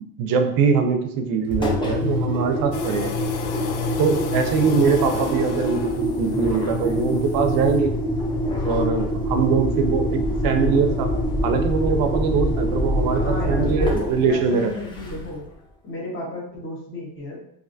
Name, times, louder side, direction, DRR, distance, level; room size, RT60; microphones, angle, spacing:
voice 1, 0.2-3.1 4.0-7.9 8.6-11.1 11.4-14.7, right 5 dB, 60° right, 7 dB, 0.5 m, -22 dB
Engine, 1.5-15.4, left 1 dB, 15° left, 0.5 m, -25 dB
sound 1, 2.7-7.8, left 5 dB, 70° left, 0.6 m, -35 dB
voice 2, 13.1-15.4 15.8-17.4, left 2 dB, 30° left, -3 dB, 1.0 m, -33 dB
3.2 x 2.6 x 2.6 m, 0.74 s
cardioid pair, 130°, 40 cm